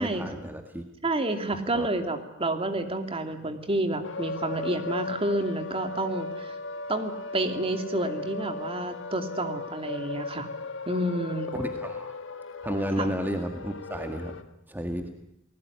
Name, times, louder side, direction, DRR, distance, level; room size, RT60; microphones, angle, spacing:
voice 1, 0.0-0.8 1.7-1.9 11.5-12.1 12.6-14.4 14.7-15.1, equal, 10° right, 5 dB, 1.9 m, -32 dB
voice 2, 1.0-6.5 6.9-10.5 10.9-11.5 13.0-13.1, right 1 dB, 30° right, 7 dB, 2.7 m, -29 dB
sound 1, 4.0-14.4, left 3 dB, 65° left, 1.6 m, -37 dB
29.0 x 19.5 x 9.7 m, 0.77 s
head